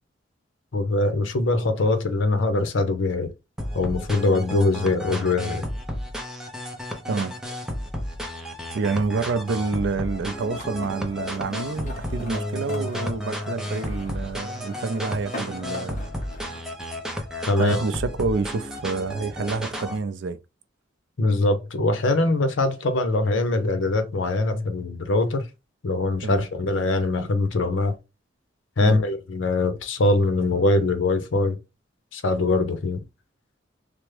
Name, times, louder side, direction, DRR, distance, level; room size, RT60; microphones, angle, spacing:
voice 1, 0.7-3.3 3.7-5.6 17.5-17.8 21.2-25.5 25.8-27.9 28.8-31.6 32.1-33.0, left 2 dB, 80° left, 0.7 m, -22 dB
sound 1, 3.6-20.0, left 1 dB, 5° right, 0.6 m, -32 dB
voice 2, 8.7-16.0 17.5-20.4 26.2-26.5 28.8-29.0, right 4 dB, 70° right, 0.4 m, -28 dB
sound 2, 9.6-16.6, left 1 dB, 40° left, 0.9 m, -42 dB
3.3 x 2.1 x 3.2 m
head